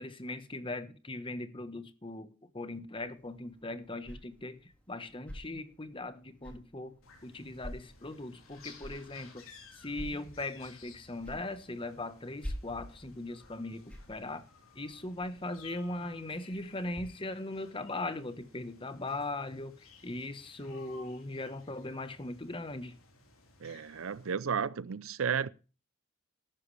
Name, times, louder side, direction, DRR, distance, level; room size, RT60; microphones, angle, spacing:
voice 1, 0.0-6.9 7.2-9.5 9.7-14.4 14.7-19.7 20.0-22.9, left 2 dB, 25° left, 1.3 m, -39 dB
sound 1, 3.0-17.0, equal, 5° left, 3.6 m, -49 dB
sound 2, 7.0-24.3, left 4 dB, 85° left, 4.0 m, -57 dB
voice 2, 23.6-25.5, right 7 dB, 75° right, 0.6 m, -33 dB
13.5 x 11.5 x 3.4 m
head